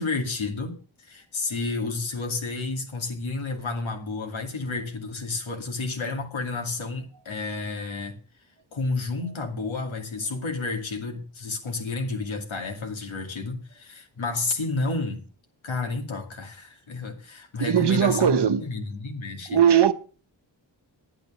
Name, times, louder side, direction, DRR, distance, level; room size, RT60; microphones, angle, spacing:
voice 1, 0.0-8.2 8.7-15.2 15.6-19.6, left 3 dB, 90° left, 2.5 m, -31 dB
voice 2, 17.6-18.6 19.5-19.9, right 9 dB, 60° right, 1.0 m, -19 dB
10.5 x 9.4 x 6.2 m
cardioid pair, 55°, 46 cm